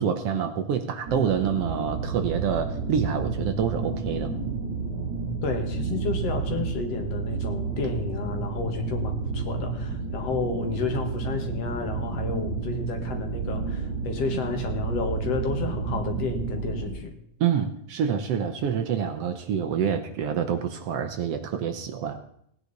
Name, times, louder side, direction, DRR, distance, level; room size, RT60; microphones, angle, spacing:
voice 1, 0.0-4.3 17.4-22.2, right 7 dB, 65° right, 7 dB, 1.7 m, -27 dB
sound 1, 1.1-16.9, right 4 dB, 45° right, 4.3 m, -30 dB
voice 2, 5.4-17.1, left 4 dB, 60° left, 5 dB, 2.5 m, -31 dB
17.5 x 9.9 x 4.1 m, 0.71 s
omnidirectional pair, 3.3 m